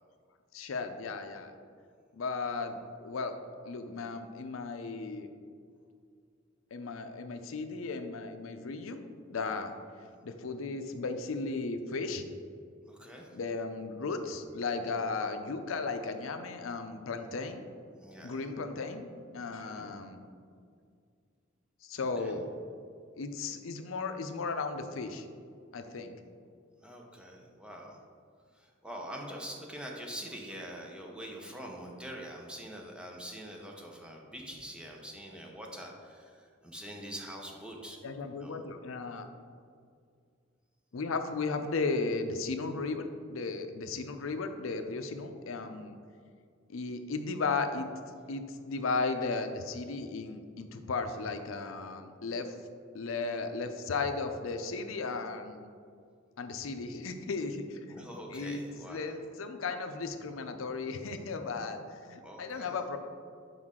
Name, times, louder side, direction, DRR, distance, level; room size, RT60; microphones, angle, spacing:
voice 1, 0.5-1.5 2.1-3.4 3.6-5.3 6.7-9.0 9.3-9.7 10.2-12.2 13.3-17.7 18.2-20.2 21.8-22.5 23.2-25.3 25.7-26.1 38.0-39.3 40.9-46.0 46.7-47.9 48.3-52.5 52.9-55.7 56.4-63.0, left 4 dB, 90° left, 7 dB, 0.5 m, -35 dB
voice 2, 12.9-13.4 18.0-18.5 19.6-19.9 22.2-22.4 26.8-28.0 28.5-38.0 38.3-38.6 57.9-59.1 62.2-62.7, equal, 5° right, 0 dB, 0.8 m, -44 dB
6.2 x 4.9 x 3.7 m, 2.2 s
head